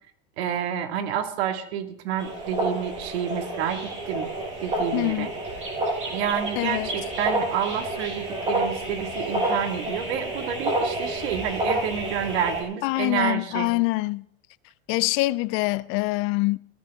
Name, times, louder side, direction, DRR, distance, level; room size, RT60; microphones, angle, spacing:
voice 1, 0.4-3.8 4.1-4.3 4.6-5.3 6.1-13.7, right 9 dB, 70° right, 2.3 m, -29 dB
sound 1, 2.2-12.6, right 1 dB, 20° right, 7.1 m, -29 dB
voice 2, 4.9-5.3 6.6-6.9 12.8-14.2 14.9-16.6, left 22 dB, 40° left, 0.5 m, -24 dB
18.0 x 13.0 x 3.7 m
supercardioid pair, 140°, 33 cm